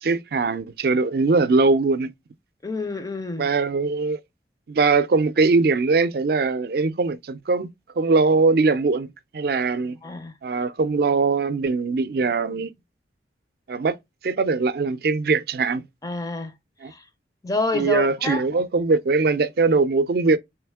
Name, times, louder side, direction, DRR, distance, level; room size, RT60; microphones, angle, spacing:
voice 1, 0.0-2.1 3.4-4.2 4.7-10.0 10.4-12.7 13.7-14.0 14.2-15.8 16.8-16.9 17.7-20.4, right 4 dB, 60° right, 0.4 m, -21 dB
voice 2, 2.6-3.5 10.0-10.3 16.0-16.5 16.8-17.1 17.4-18.4, left 2 dB, 20° left, 0.4 m, -28 dB
3.4 x 3.1 x 3.4 m
head